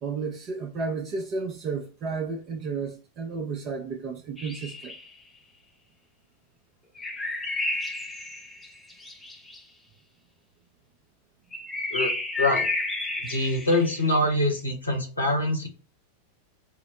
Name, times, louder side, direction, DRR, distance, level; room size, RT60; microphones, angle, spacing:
voice 1, 0.0-4.9, right 4 dB, 35° right, 0.6 m, -32 dB
sound 1, 4.4-5.1 7.0-9.6 11.5-14.2, left 2 dB, 10° left, 0.7 m, -31 dB
voice 2, 13.2-15.7, left 1 dB, 85° left, 1.2 m, -24 dB
4.8 x 2.0 x 3.0 m
figure-of-eight pair, 90°, 0 cm